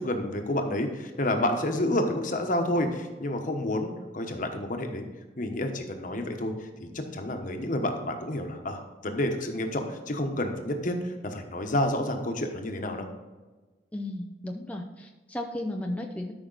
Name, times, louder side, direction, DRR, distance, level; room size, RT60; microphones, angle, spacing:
voice 1, 0.0-5.1 5.4-6.5 6.8-13.1, left 1 dB, 45° left, 5 dB, 1.2 m, -29 dB
voice 2, 13.9-16.3, left 1 dB, 10° left, 2 dB, 0.5 m, -34 dB
13.0 x 5.7 x 4.0 m, 1.2 s
head